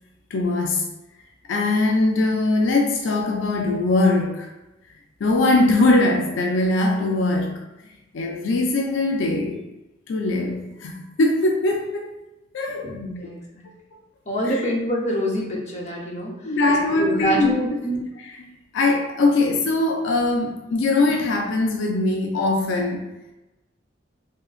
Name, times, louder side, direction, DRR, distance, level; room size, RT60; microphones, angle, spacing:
voice 1, 0.3-0.9 1.5-4.5 5.2-9.6 10.1-12.1 12.5-13.3 14.4-14.6 16.4-17.8 18.2-23.1, left 2 dB, 75° left, 1 dB, 0.4 m, -21 dB
voice 2, 12.8-13.6 14.3-16.3 17.0-18.0, equal, 35° left, -3 dB, 0.7 m, -25 dB
3.7 x 2.9 x 2.4 m, 0.97 s
head